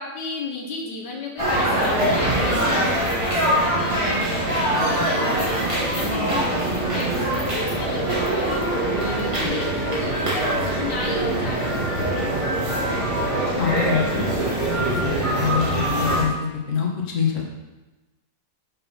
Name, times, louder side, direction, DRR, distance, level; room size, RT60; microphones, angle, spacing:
voice 1, 0.0-12.4, left 3 dB, 75° left, -1 dB, 1.6 m, -34 dB
sound 1, 1.4-16.2, right 1 dB, 20° right, 1.7 m, -23 dB
voice 2, 13.6-14.3 14.9-15.0 15.4-16.9 17.1-17.4, left 7 dB, 45° left, -1 dB, 1.7 m, -24 dB
6.7 x 6.1 x 5.4 m, 1.1 s
omnidirectional pair, 1.9 m